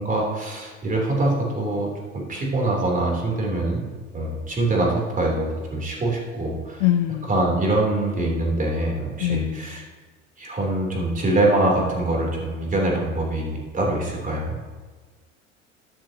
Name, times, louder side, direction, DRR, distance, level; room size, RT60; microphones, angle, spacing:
voice 1, 0.0-1.9 2.1-3.9 4.1-6.8 7.3-9.8 10.4-14.6, right 2 dB, 20° right, -2 dB, 3.5 m, -24 dB
voice 2, 6.8-7.3 9.2-9.7, left 12 dB, 55° left, 11 dB, 0.6 m, -23 dB
12.0 x 12.0 x 3.0 m, 1.4 s
figure-of-eight pair, 75°, 39 cm